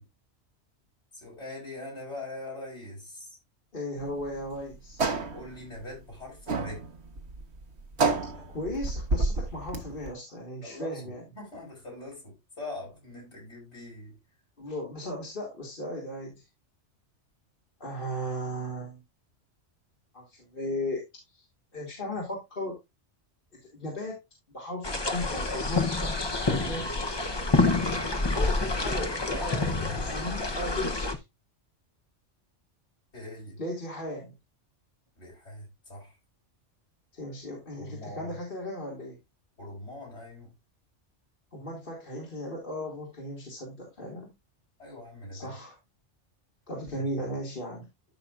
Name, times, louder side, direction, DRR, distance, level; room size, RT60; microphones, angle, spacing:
voice 1, 1.1-3.4 5.3-6.9 10.6-14.2 33.1-33.6 35.2-36.2 37.7-38.4 39.6-40.5 44.8-45.6 46.9-47.1, left 2 dB, 70° left, 5.7 m, -42 dB
voice 2, 3.7-5.0 8.3-11.2 14.6-16.4 17.8-19.0 20.1-21.0 21.3-21.4 21.7-22.8 23.7-24.2 24.5-26.9 28.3-31.2 33.6-34.4 37.1-39.2 41.5-44.3 45.3-45.8 46.7-47.9, left 1 dB, 50° left, 2.6 m, -36 dB
sound 1, 4.0-10.1, right 3 dB, 65° right, 1.6 m, -30 dB
sound 2, 24.8-31.1, left 3 dB, 25° left, 0.8 m, -28 dB
13.0 x 5.9 x 2.5 m
omnidirectional pair, 1.2 m